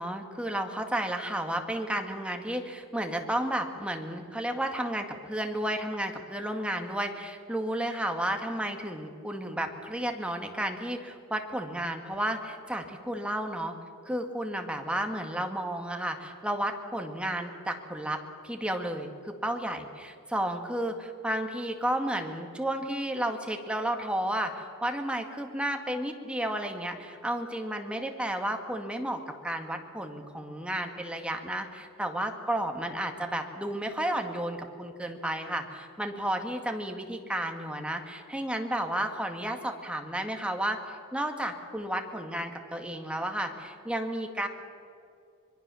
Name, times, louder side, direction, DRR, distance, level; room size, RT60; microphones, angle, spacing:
voice 1, 0.0-13.7 14.1-44.5, right 1 dB, 5° right, 4 dB, 2.0 m, -32 dB
25.5 x 22.0 x 7.1 m, 2.4 s
head